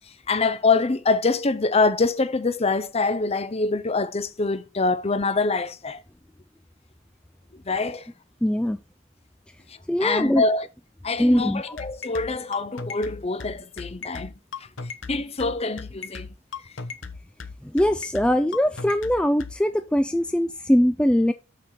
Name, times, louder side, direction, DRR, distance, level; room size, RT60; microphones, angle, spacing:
voice 1, 0.3-6.0 7.7-8.0 10.0-10.6 11.0-14.3 15.1-16.3, left 3 dB, 30° left, 0.7 m, -24 dB
voice 2, 8.4-8.8 9.9-10.4 11.2-11.8 17.6-21.3, equal, 5° left, 0.3 m, -21 dB
sound 1, 11.8-19.5, left 5 dB, 70° left, 1.0 m, -36 dB
6.9 x 5.7 x 4.8 m
head